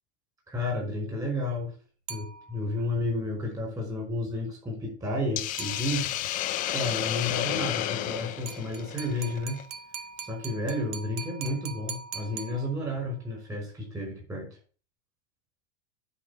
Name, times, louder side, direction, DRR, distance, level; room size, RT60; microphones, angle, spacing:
voice 1, 0.5-1.7 2.1-6.1 6.7-9.6 10.2-14.5, left 1 dB, 10° right, -1 dB, 5.1 m, -31 dB
sound 1, 2.1-2.9 5.6-6.3 8.5-13.1, right 7 dB, 80° right, 1.9 m, -42 dB
Hiss, 5.4-9.6, left 13 dB, 25° left, 0.6 m, -31 dB
10.0 x 5.6 x 8.2 m, 0.39 s
supercardioid pair, 175°, 35 cm